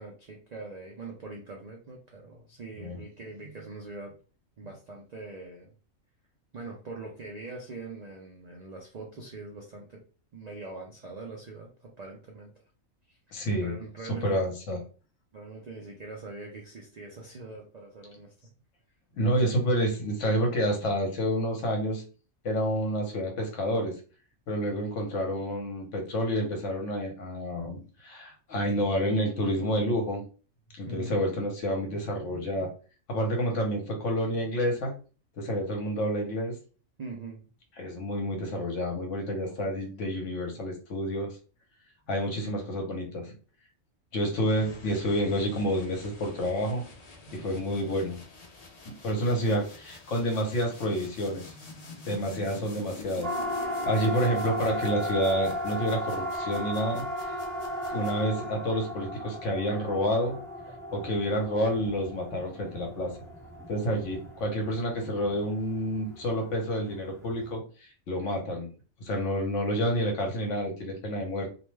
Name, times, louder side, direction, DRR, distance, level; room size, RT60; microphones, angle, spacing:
voice 1, 0.0-4.1 4.6-5.7 6.5-10.0 10.3-12.5 13.1-13.2 13.6-14.4 15.3-18.3 30.9-31.2 37.0-37.5, right 3 dB, 65° right, 0 dB, 0.4 m, -42 dB
voice 2, 13.3-13.7 14.1-14.8 19.1-22.0 22.4-24.0 24.5-30.2 30.8-32.7 33.1-35.0 35.4-36.6 37.8-41.4 42.1-43.3 44.1-46.8 47.3-48.2 48.8-51.5 52.1-53.3 53.6-57.4 57.9-60.4 60.9-63.1 63.7-68.7 69.0-71.5, equal, 65° left, 2 dB, 1.1 m, -29 dB
sound 1, 44.3-58.6, left 3 dB, 50° left, 0.4 m, -47 dB
Siren, 53.2-67.5, equal, 5° left, 0.8 m, -36 dB
2.6 x 2.1 x 3.1 m, 0.36 s
omnidirectional pair, 1.4 m